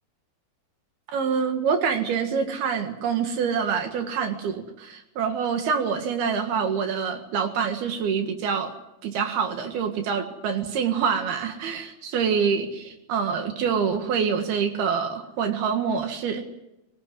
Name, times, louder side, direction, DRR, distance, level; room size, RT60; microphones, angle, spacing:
voice 1, 1.1-8.7 9.0-16.4, right 6 dB, 75° right, 6 dB, 3.7 m, -26 dB
22.5 x 18.5 x 9.5 m, 0.91 s
omnidirectional pair, 4.5 m